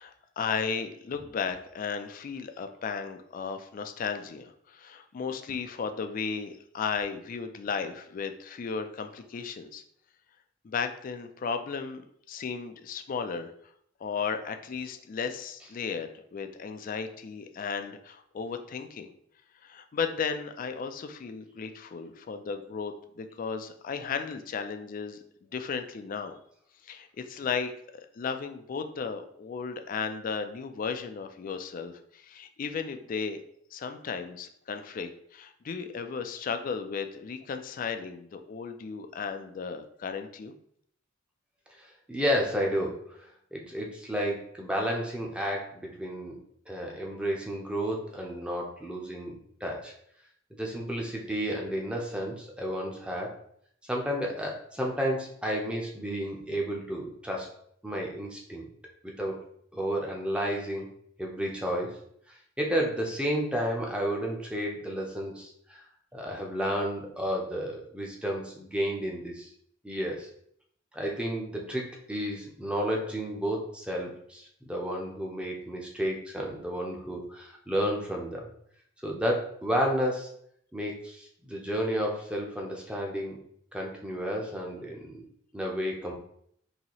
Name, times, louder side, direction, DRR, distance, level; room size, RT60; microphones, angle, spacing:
voice 1, 0.0-9.8 10.6-12.0 12.3-13.5 14.0-19.1 19.6-25.2 25.5-26.4 26.8-33.4 33.7-40.5, left 5 dB, 45° left, 7 dB, 0.3 m, -35 dB
voice 2, 41.8-46.4 46.7-49.9 50.5-53.4 53.8-57.5 57.8-58.7 59.0-59.4 59.7-60.9 61.2-62.0 62.3-65.8 66.1-69.5 69.8-70.3 70.9-78.5 79.0-80.3 80.7-83.4 83.7-86.1, equal, 5° right, -1 dB, 0.6 m, -32 dB
4.1 x 2.8 x 2.9 m, 0.67 s
head